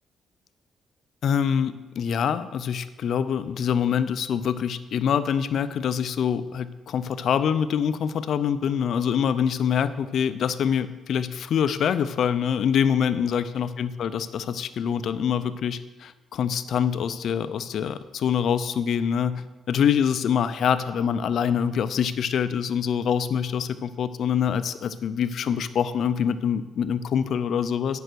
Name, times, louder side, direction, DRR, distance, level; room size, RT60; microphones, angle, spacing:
voice 1, 1.2-28.0, left 8 dB, 65° left, 13 dB, 0.5 m, -25 dB
9.2 x 5.5 x 6.3 m, 1.2 s
cardioid pair, 90°, 0 cm